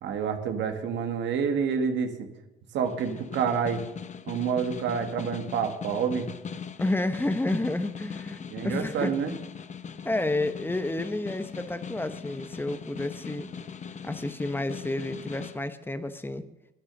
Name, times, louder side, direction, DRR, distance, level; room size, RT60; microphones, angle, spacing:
voice 1, 0.0-2.3 2.7-3.8 4.3-6.3 8.5-9.3, right 6 dB, 85° right, 6 dB, 1.8 m, -28 dB
Snare drum, 2.8-15.6, left 6 dB, 40° left, 0.8 m, -40 dB
voice 2, 6.8-9.1 10.0-13.5 14.0-16.4, left 2 dB, 10° left, 10 dB, 1.0 m, -30 dB
11.5 x 10.0 x 6.7 m, 0.94 s
cardioid pair, 95°, 18 cm